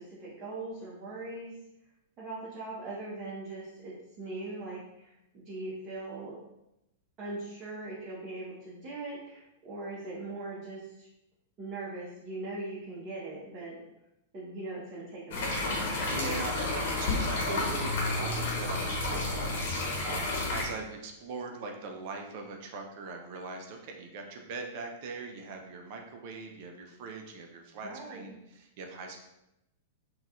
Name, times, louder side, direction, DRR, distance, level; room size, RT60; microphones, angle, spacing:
voice 1, 0.0-1.5 2.2-6.4 7.2-11.1 11.6-13.8 14.3-15.6 27.8-28.2, right 2 dB, 35° right, -7 dB, 0.9 m, -40 dB
sound 1, 15.3-20.6, left 2 dB, 60° left, 1.0 m, -31 dB
voice 2, 16.0-29.2, right 3 dB, 55° right, 3 dB, 0.5 m, -41 dB
3.9 x 2.3 x 2.4 m, 0.88 s
hypercardioid pair, 110°, 0 cm